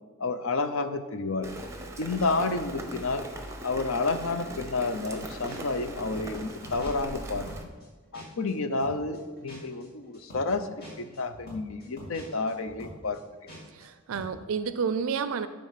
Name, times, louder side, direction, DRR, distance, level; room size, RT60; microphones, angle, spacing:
voice 1, 0.2-1.5 2.0-3.2 3.6-7.5 8.1-13.2, left 3 dB, 65° left, 10 dB, 0.6 m, -30 dB
Rain, 1.4-7.6, right 1 dB, 15° right, 0.8 m, -39 dB
sound 1, 5.1-5.2 5.5-8.5 8.8-13.9 14.1-14.4, equal, 45° left, 2.7 m, -46 dB
voice 2, 13.7-15.5, right 6 dB, 65° right, 12 dB, 0.4 m, -30 dB
11.5 x 4.2 x 5.7 m, 1.3 s
head